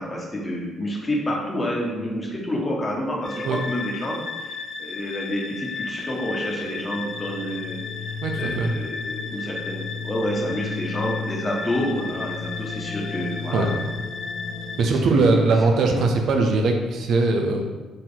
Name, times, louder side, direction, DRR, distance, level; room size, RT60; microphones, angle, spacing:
voice 1, 0.0-7.8 8.4-13.7 14.8-15.4 15.7-16.0, equal, 25° left, -2 dB, 1.2 m, -29 dB
sound 1, 3.2-14.8, left 5 dB, 55° left, 0.4 m, -32 dB
voice 2, 8.2-8.7 13.5-13.7 14.8-17.6, right 3 dB, 65° right, 2 dB, 0.5 m, -20 dB
3.9 x 2.9 x 3.8 m, 1.2 s
hypercardioid pair, 55°, 0 cm